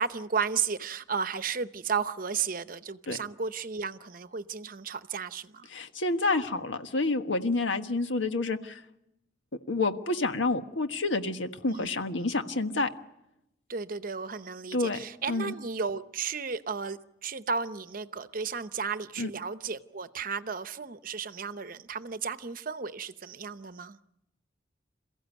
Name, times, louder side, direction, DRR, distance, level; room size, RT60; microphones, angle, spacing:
voice 1, 0.0-5.7 11.6-11.9 12.2-12.3 13.7-24.0, right 5 dB, 50° right, 0.8 m, -34 dB
voice 2, 5.7-8.8 9.7-12.9 14.7-15.0 15.3-15.5 19.2-19.3, left 3 dB, 90° left, 1.5 m, -28 dB
28.0 x 15.5 x 9.3 m
head